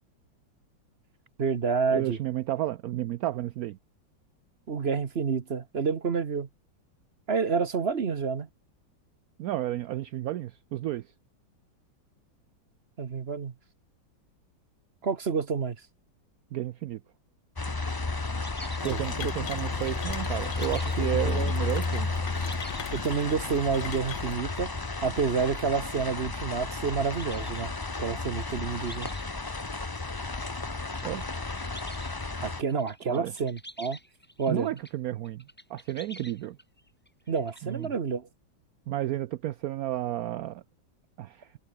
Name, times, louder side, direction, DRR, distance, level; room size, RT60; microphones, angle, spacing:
voice 1, 1.4-2.2 4.7-6.5 7.3-8.5 13.0-13.5 15.0-15.8 18.8-19.3 21.0-21.5 22.9-24.7 25.0-27.7 28.0-29.1 32.2-34.0 34.4-34.7 37.3-38.3, right 5 dB, 40° right, 1.0 m, -29 dB
voice 2, 1.9-3.8 9.4-11.0 16.5-17.0 18.8-22.1 31.0-31.3 33.1-33.3 34.5-35.4 35.7-36.6 37.6-37.9 38.9-40.6 41.2-41.5, right 14 dB, 70° right, 0.8 m, -32 dB
sound 1, 17.6-32.6, left 3 dB, 30° left, 0.4 m, -32 dB
sound 2, 18.4-23.7 24.2-29.5 29.8-34.9 35.2-37.9, equal, 5° left, 3.1 m, -49 dB
sound 3, 18.8-24.4, left 12 dB, 85° left, 1.7 m, -41 dB
omnidirectional pair, 2.1 m